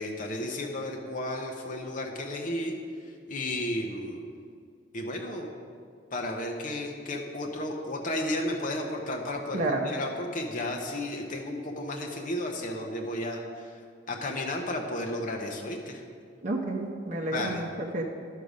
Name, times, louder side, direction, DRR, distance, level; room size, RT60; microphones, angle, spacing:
voice 1, 0.0-2.8 3.0-4.3 4.9-5.5 6.1-13.8 14.1-16.0 17.3-17.6, left 1 dB, 45° left, 1 dB, 0.8 m, -33 dB
voice 2, 9.5-9.9 16.4-17.7 17.9-18.0, right 2 dB, 40° right, -1 dB, 0.7 m, -30 dB
11.0 x 6.6 x 5.1 m, 2.2 s
head